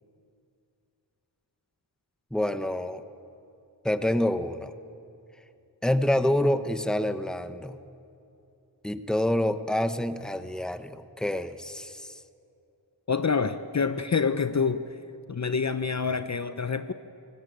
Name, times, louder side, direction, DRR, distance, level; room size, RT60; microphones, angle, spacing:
voice 1, 2.3-3.0 3.8-4.7 5.8-7.8 8.8-12.2, left 1 dB, ahead, 11 dB, 1.1 m, -27 dB
voice 2, 13.1-14.9 15.3-16.9, left 5 dB, 40° left, 11 dB, 0.8 m, -27 dB
24.5 x 17.0 x 9.3 m, 2.7 s
cardioid pair, 60°, 44 cm